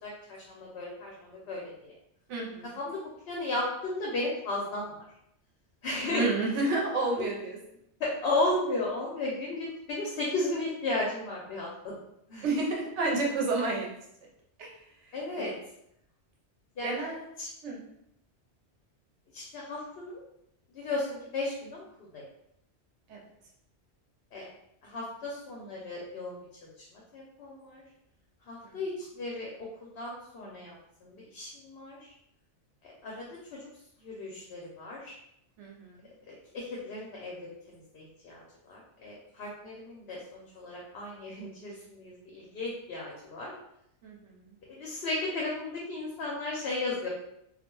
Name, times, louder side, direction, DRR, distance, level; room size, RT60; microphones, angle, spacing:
voice 1, 0.0-1.9 2.8-3.0 3.3-4.9 5.8-6.2 8.0-11.9 12.3-12.4 15.1-15.5 16.8-17.0 17.4-17.5 19.3-20.2 20.7-21.8 22.1-22.3 24.3-24.4 24.8-26.4 26.9-27.8 28.5-30.8 31.0-32.0 32.8-33.3 33.5-33.6 34.0-35.1 36.3-37.4 37.7-43.5 44.7-47.1, left 2 dB, 65° left, -3 dB, 0.8 m, -34 dB
voice 2, 2.3-2.7 6.1-7.6 12.4-13.9 14.6-14.7 15.0-15.5 16.8-17.3 17.6-17.8 23.1-23.2 28.6-28.8 35.6-36.1 44.0-44.5, right 2 dB, 90° right, -1 dB, 1.0 m, -31 dB
2.3 x 2.1 x 2.9 m, 0.77 s
omnidirectional pair, 1.2 m